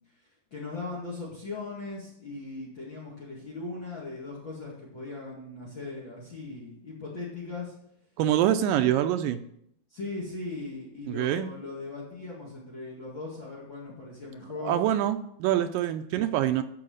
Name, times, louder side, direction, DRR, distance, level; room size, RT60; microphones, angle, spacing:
voice 1, 0.5-7.8 8.6-8.9 9.9-14.8, left 3 dB, 35° left, -4 dB, 2.4 m, -38 dB
voice 2, 8.2-9.4 11.1-11.5 14.7-16.6, right 12 dB, 80° right, 8 dB, 2.1 m, -25 dB
13.0 x 4.8 x 6.4 m, 0.72 s
omnidirectional pair, 4.2 m